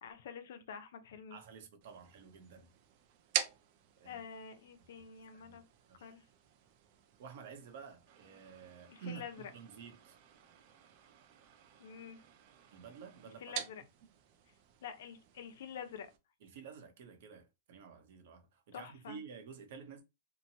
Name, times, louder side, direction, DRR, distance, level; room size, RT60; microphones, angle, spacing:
voice 1, 0.0-1.4 4.1-5.6 6.0-6.2 8.9-9.5 11.8-12.2 13.4-13.8 14.8-16.1 18.7-19.2, left 7 dB, 70° left, 0.6 m, -47 dB
voice 2, 1.3-2.7 4.0-4.2 5.0-5.1 5.3-5.6 5.9-6.1 7.2-10.2 12.7-13.4 16.4-20.0, right 6 dB, 55° right, 0.8 m, -51 dB
sound 1, 1.8-16.2, right 10 dB, 40° right, 0.4 m, -47 dB
2.9 x 2.2 x 2.7 m
supercardioid pair, 160°, 0 cm